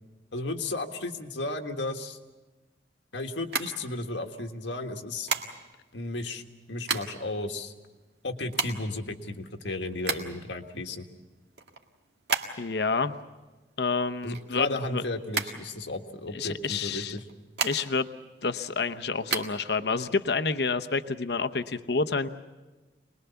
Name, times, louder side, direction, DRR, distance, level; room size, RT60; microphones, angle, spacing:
voice 1, 0.3-2.2 3.1-5.3 5.9-7.7 8.2-11.1 14.2-17.2, left 2 dB, 85° left, 4 dB, 1.7 m, -34 dB
sound 1, 3.4-4.4 5.3-5.9 6.5-7.3 7.6-7.7 7.9-10.5 10.9-12.8 13.1-14.9 15.3-16.3 17.1-18.1 18.5-19.4, right 5 dB, 70° right, 1.8 m, -32 dB
voice 2, 12.6-13.1 13.8-15.0 16.3-17.2 17.6-18.1 18.4-22.3, left 4 dB, 65° left, 9 dB, 0.9 m, -28 dB
25.0 x 20.5 x 7.0 m, 1.2 s
head